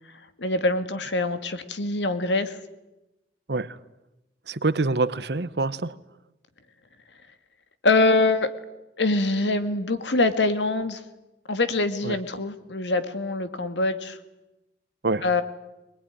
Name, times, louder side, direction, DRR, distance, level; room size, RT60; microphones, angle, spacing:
voice 1, 0.4-2.6 7.8-8.5 9.0-11.0 11.5-14.2 15.2-15.4, left 2 dB, 90° left, 1.9 m, -24 dB
voice 2, 4.5-5.9 12.0-12.1 15.0-15.3, right 3 dB, 70° right, 1.0 m, -26 dB
21.5 x 20.5 x 10.0 m
head